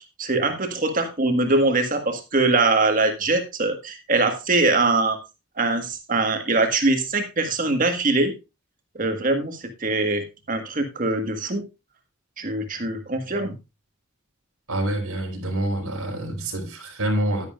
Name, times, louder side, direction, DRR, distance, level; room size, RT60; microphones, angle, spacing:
voice 1, 0.2-5.2 5.6-8.3 8.9-11.6 12.4-13.5, right 2 dB, 40° right, 1.6 m, -22 dB
voice 2, 14.7-17.5, right 1 dB, 85° right, 4.2 m, -26 dB
11.0 x 10.5 x 2.4 m
head